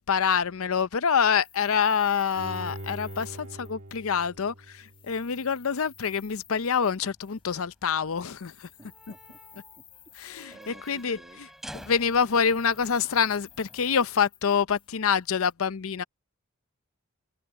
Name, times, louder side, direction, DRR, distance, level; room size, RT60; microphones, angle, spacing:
voice 1, 0.0-8.7 10.2-11.2 11.9-16.0, left 6 dB, 75° left, 0.6 m, -26 dB
sound 1, 1.4-4.4 4.7-7.5 8.1-11.3 11.6-15.5, left 9 dB, 25° left, 4.7 m, -55 dB
Bowed string instrument, 2.3-5.5 5.9-6.0, right 1 dB, 60° right, 1.7 m, -42 dB
sound 2, 6.0-14.3, equal, ahead, 3.3 m, -50 dB
voice 2, 8.8-9.9 10.5-11.4, right 1 dB, 20° right, 1.9 m, -53 dB
head